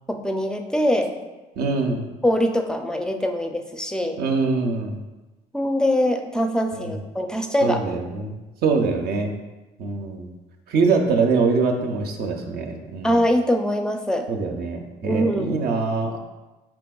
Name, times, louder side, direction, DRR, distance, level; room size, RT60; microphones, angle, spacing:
voice 1, 0.1-1.1 2.2-4.2 5.5-7.8 13.0-14.3 15.0-15.6, equal, 5° left, 5 dB, 0.4 m, -23 dB
voice 2, 1.6-2.1 4.2-5.0 6.8-7.0 7.6-8.3 8.6-9.3 9.8-10.3 10.7-13.1 14.3-16.2, right 4 dB, 60° right, 3 dB, 0.5 m, -23 dB
4.5 x 3.3 x 2.3 m, 1.1 s
supercardioid pair, 65°, 18 cm